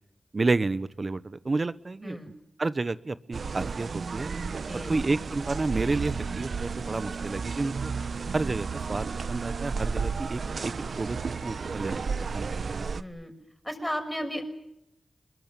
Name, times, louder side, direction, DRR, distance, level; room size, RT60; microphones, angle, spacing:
voice 1, 0.3-2.2 2.6-4.3 4.7-7.9 8.3-12.0 12.3-12.9, right 3 dB, 45° right, 15 dB, 1.0 m, -30 dB
sound 1, 3.3-13.0, right 5 dB, 70° right, 1.0 m, -33 dB
voice 2, 12.8-13.3 13.6-14.5, equal, 5° left, 6 dB, 6.1 m, -34 dB
23.5 x 22.5 x 9.1 m, 0.82 s
cardioid pair, 60°, 0 cm